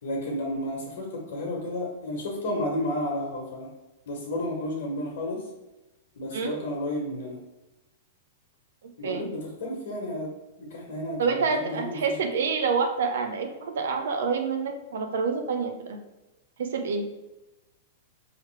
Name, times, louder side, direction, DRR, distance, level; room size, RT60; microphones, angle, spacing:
voice 1, 0.0-3.7 4.1-5.4 6.1-7.4 9.0-10.3 10.6-12.2, left 1 dB, 70° left, -2 dB, 1.3 m, -32 dB
voice 2, 6.3-6.6 9.0-9.3 11.2-16.0 16.6-17.1, right 5 dB, 75° right, 5 dB, 0.6 m, -27 dB
4.8 x 3.2 x 3.2 m, 1.0 s
hypercardioid pair, 115°, 0 cm